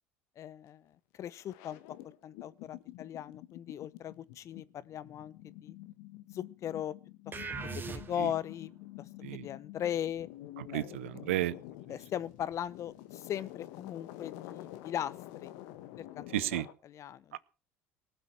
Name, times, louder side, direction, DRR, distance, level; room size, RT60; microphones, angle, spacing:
voice 1, 0.4-0.8 1.2-1.8 2.2-5.7 6.3-6.9 7.7-8.7 9.3-10.3 10.7-10.9 11.9-15.5 16.0-16.3 16.5-17.4, left 10 dB, 50° left, 0.9 m, -38 dB
sound 1, 0.9-1.0 1.3-16.7, left 15 dB, 70° left, 1.3 m, -48 dB
sound 2, 7.3-8.5, right 4 dB, 30° right, 2.4 m, -40 dB
voice 2, 10.6-11.6 16.3-16.7, right 14 dB, 80° right, 0.7 m, -33 dB
19.0 x 7.9 x 6.4 m
hypercardioid pair, 70°, 7 cm